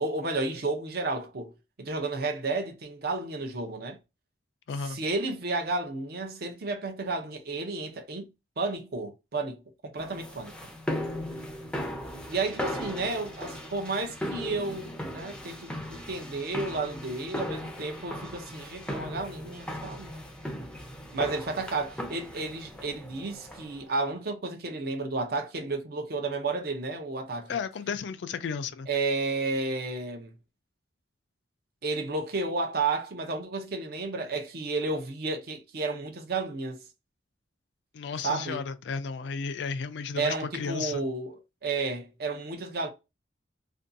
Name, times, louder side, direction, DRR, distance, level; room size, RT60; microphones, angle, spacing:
voice 1, 0.0-1.5 1.8-4.0 4.8-8.3 8.6-10.5 12.3-20.2 21.1-27.5 28.9-30.3 31.8-36.8 38.2-38.6 40.2-42.9, right 3 dB, 55° right, 0.5 m, -32 dB
voice 2, 4.7-5.0 27.5-28.9 37.9-41.0, left 5 dB, 70° left, 0.3 m, -33 dB
sound 1, 10.0-23.9, left 1 dB, 5° left, 0.4 m, -37 dB
2.5 x 2.2 x 2.5 m
head